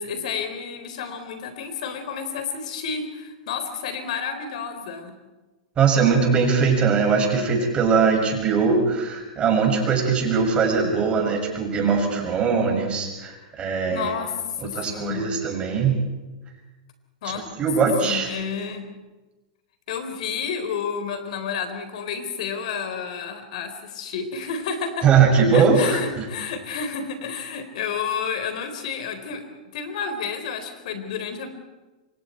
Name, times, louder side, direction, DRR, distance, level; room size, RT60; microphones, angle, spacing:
voice 1, 0.0-5.1 13.9-14.4 14.6-15.2 17.2-17.4 17.8-18.9 19.9-25.1 25.5-31.5, left 6 dB, 65° left, 8 dB, 4.2 m, -30 dB
voice 2, 5.8-14.1 14.6-16.0 17.6-18.3 25.0-26.2, right 5 dB, 25° right, 1 dB, 6.9 m, -21 dB
28.0 x 25.0 x 4.5 m, 1.2 s
hypercardioid pair, 120°, 4 cm